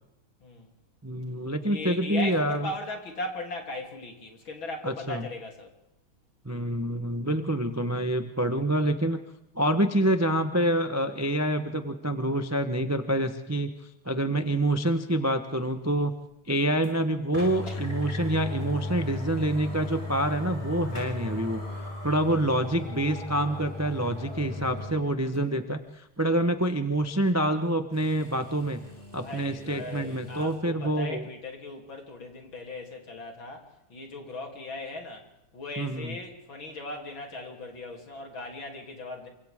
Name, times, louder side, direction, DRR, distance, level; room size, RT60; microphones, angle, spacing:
voice 1, 1.0-2.7 4.8-5.2 6.4-9.2 9.5-13.7 14.0-16.1 16.5-28.8 29.1-31.2 35.8-36.1, right 1 dB, 20° right, 8 dB, 0.4 m, -27 dB
voice 2, 1.6-5.7 17.7-17.8 29.2-35.3 35.5-39.3, left 2 dB, 60° left, 2 dB, 4.0 m, -38 dB
sound 1, 16.8-16.9 17.3-24.9 25.3-25.4 27.9-30.6, left 2 dB, 25° left, 7.2 m, -37 dB
28.5 x 25.0 x 3.7 m, 0.87 s
omnidirectional pair, 2.4 m